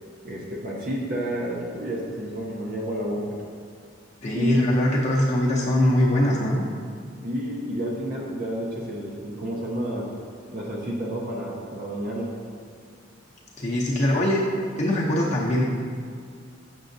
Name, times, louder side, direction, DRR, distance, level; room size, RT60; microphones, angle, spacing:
voice 1, 0.2-3.4 4.3-4.7 7.2-10.1 10.5-12.3, equal, 50° right, -3 dB, 0.7 m, -30 dB
voice 2, 4.2-6.6 13.6-14.4 14.8-15.6, left 1 dB, 40° left, -5 dB, 0.7 m, -22 dB
6.7 x 6.1 x 2.6 m, 2.2 s
head